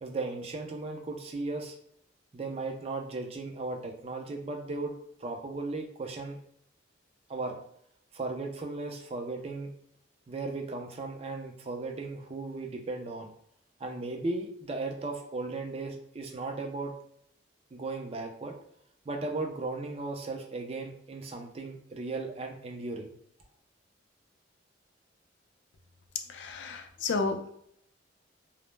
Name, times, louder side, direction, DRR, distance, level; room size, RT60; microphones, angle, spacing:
voice 1, 0.0-1.7 2.3-4.9 5.2-6.4 7.3-7.6 8.1-9.7 10.3-13.3 13.8-16.9 17.7-18.5 19.1-23.2, right 3 dB, 30° right, 2 dB, 0.3 m, -36 dB
voice 2, 26.3-27.5, left 4 dB, 60° left, 4 dB, 0.4 m, -32 dB
2.0 x 2.0 x 3.1 m, 0.70 s
head